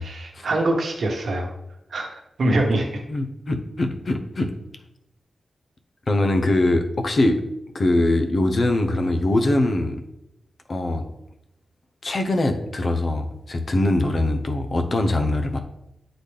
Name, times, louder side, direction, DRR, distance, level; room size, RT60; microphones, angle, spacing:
voice 1, 0.0-1.5 1.9-2.1 2.4-3.0, right 1 dB, 65° right, 2 dB, 1.2 m, -23 dB
voice 2, 3.1-4.5 6.1-7.4 7.7-10.0 10.7-11.1 12.0-15.6, left 2 dB, 45° left, 5 dB, 0.7 m, -22 dB
8.2 x 3.9 x 3.4 m, 0.84 s
wide cardioid pair, 105°, 0 cm